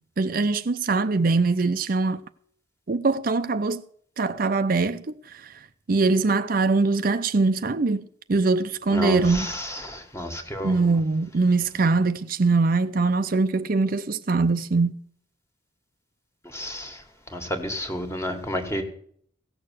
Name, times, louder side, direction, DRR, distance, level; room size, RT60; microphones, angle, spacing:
voice 1, 0.2-2.2 2.9-3.8 4.2-5.5 5.9-8.0 8.3-9.5 10.6-14.9, right 3 dB, 50° right, 0.5 m, -22 dB
voice 2, 9.9-10.7 16.5-16.9 17.3-18.8, equal, 15° left, 1.8 m, -30 dB
16.5 x 6.7 x 8.4 m
head